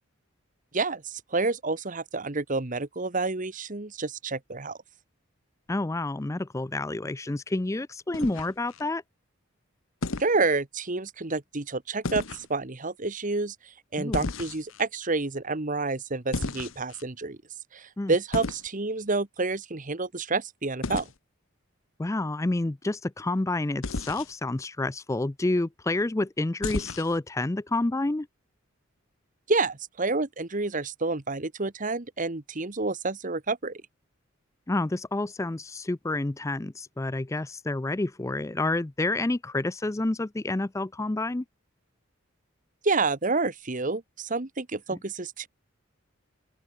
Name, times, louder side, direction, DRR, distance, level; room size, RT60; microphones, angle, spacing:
voice 1, 0.7-4.8 10.2-13.5 13.9-17.4 17.7-21.1 29.5-33.8 42.8-45.5, right 3 dB, 40° right, 1.3 m, -29 dB
voice 2, 5.7-9.0 14.0-14.3 18.0-18.2 22.0-28.3 34.7-41.4 44.9-45.0, left 2 dB, 15° left, 0.4 m, -29 dB
sound 1, 8.1-8.8 10.0-10.4 12.0-12.5 14.1-14.8 16.3-17.0 18.3-18.7 20.8-21.1 23.8-24.3 26.6-27.2, left 3 dB, 70° left, 1.1 m, -33 dB
open air
head